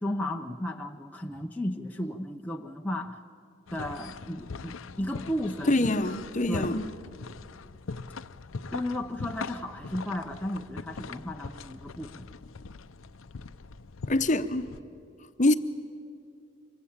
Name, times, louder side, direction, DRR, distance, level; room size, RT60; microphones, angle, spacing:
voice 1, 0.0-3.2 3.7-6.0 6.5-6.9 8.7-12.3, left 1 dB, 10° left, 2 dB, 0.6 m, -34 dB
sound 1, 3.7-14.8, left 4 dB, 75° left, 0.6 m, -41 dB
voice 2, 5.7-6.8 14.1-14.7 15.4-15.5, left 2 dB, 35° left, 10 dB, 0.9 m, -25 dB
25.5 x 22.5 x 8.7 m, 2.4 s
head